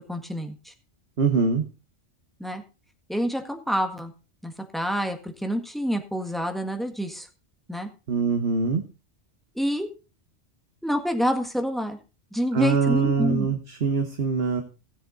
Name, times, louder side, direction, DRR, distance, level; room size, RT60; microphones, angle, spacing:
voice 1, 0.1-0.7 2.4-2.6 3.1-4.1 4.4-7.3 7.7-7.9 9.5-9.9 10.8-12.0 12.3-13.5, equal, ahead, 5 dB, 1.6 m, -27 dB
voice 2, 1.2-1.7 8.1-8.8 12.5-14.6, right 5 dB, 55° right, 5 dB, 1.4 m, -23 dB
17.0 x 7.3 x 3.9 m, 0.32 s
omnidirectional pair, 1.2 m